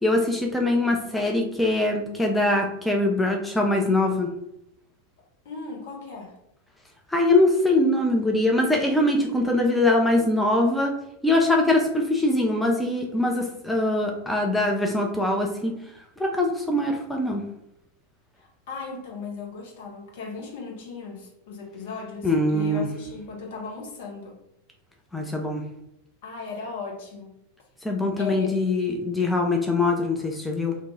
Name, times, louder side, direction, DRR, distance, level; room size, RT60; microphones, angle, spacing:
voice 1, 0.0-4.3 7.1-10.9 11.2-15.7 16.2-17.4 22.2-22.9 25.1-25.6 27.8-30.8, left 2 dB, 5° left, 1 dB, 0.4 m, -22 dB
voice 2, 5.4-6.4 18.4-24.4 26.2-27.4 28.2-28.6, left 4 dB, 55° left, 0 dB, 0.8 m, -37 dB
2.6 x 2.2 x 4.0 m, 0.81 s
figure-of-eight pair, 90°, 0 cm